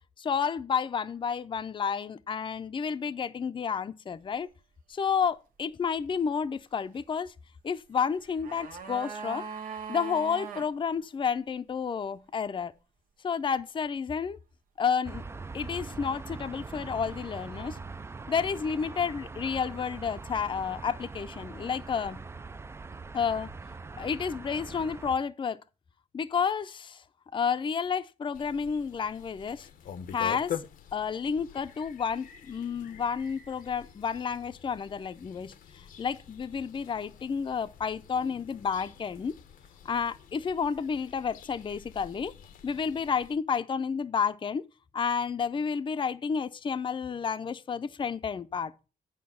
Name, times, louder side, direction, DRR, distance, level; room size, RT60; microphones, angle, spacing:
voice 1, 0.2-4.5 4.9-7.3 7.6-9.5 9.9-12.7 13.2-14.4 14.8-15.2 15.5-17.8 18.3-22.2 23.1-23.5 24.0-25.6 26.1-27.0 27.3-29.7 30.1-30.6 30.9-39.3 39.8-42.3 42.6-44.6 44.9-48.7, left 6 dB, 35° left, 0.5 m, -31 dB
sound 1, 8.1-10.7 11.0-11.1, right 6 dB, 80° right, 1.0 m, -40 dB
sound 2, 15.0-25.1, right 4 dB, 20° right, 0.4 m, -42 dB
sound 3, 28.3-43.4, left 9 dB, 80° left, 0.8 m, -46 dB
8.6 x 5.2 x 5.5 m
cardioid pair, 85°, 14 cm